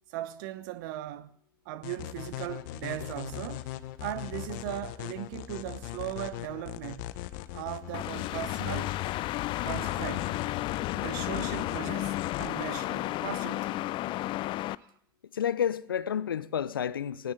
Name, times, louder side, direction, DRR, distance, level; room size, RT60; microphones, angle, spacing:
voice 1, 0.1-1.4 1.6-3.7 4.0-7.1 7.5-9.0 9.6-10.4 10.9-13.8 14.8-14.9, right 13 dB, 65° right, 1.1 m, -38 dB
sound 1, 1.8-12.5, left 15 dB, 60° left, 1.1 m, -40 dB
sound 2, 7.9-14.8, left 16 dB, 45° left, 0.6 m, -32 dB
voice 2, 15.3-17.3, left 9 dB, 85° left, 0.7 m, -30 dB
19.5 x 18.0 x 4.0 m
hypercardioid pair, 80°, 11 cm